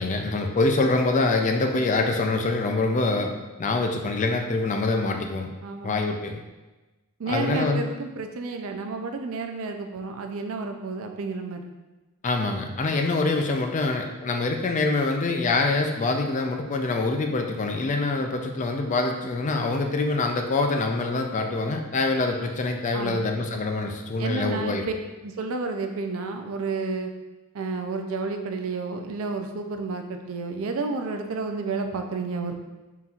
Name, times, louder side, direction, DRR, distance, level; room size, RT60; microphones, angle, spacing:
voice 1, 0.0-3.3 3.6-5.5 5.8-6.4 7.3-7.8 12.2-24.8, left 3 dB, 35° left, 4 dB, 0.4 m, -25 dB
voice 2, 5.6-5.9 7.2-11.6 22.9-23.3 24.2-24.8 25.2-27.1 27.5-32.6, right 4 dB, 65° right, 5 dB, 0.4 m, -31 dB
4.2 x 3.8 x 2.4 m, 1.1 s
head